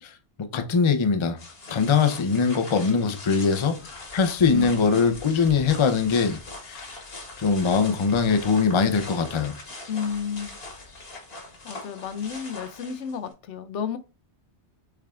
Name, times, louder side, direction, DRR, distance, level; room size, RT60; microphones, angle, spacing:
voice 1, 0.0-1.4 1.7-7.0 7.4-9.6, left 5 dB, 35° left, 0.5 m, -22 dB
sound 1, 1.4-13.3, left 2 dB, 60° left, 1.5 m, -41 dB
voice 2, 4.5-5.1 9.9-10.6 11.6-14.0, left 7 dB, 80° left, 0.9 m, -32 dB
6.4 x 3.4 x 2.4 m
omnidirectional pair, 1.2 m